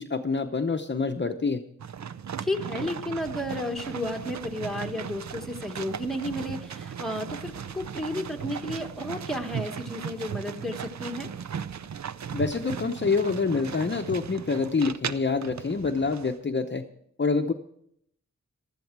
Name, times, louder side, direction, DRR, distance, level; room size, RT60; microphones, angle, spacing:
voice 1, 0.0-1.6 12.3-16.9 17.2-17.5, left 4 dB, 40° left, 6 dB, 0.7 m, -26 dB
sound 1, 1.8-16.4, right 7 dB, 65° right, 0.6 m, -37 dB
voice 2, 2.4-11.3, left 1 dB, ahead, 3 dB, 1.4 m, -32 dB
15.5 x 12.0 x 4.6 m, 0.69 s
wide cardioid pair, 85°, 30 cm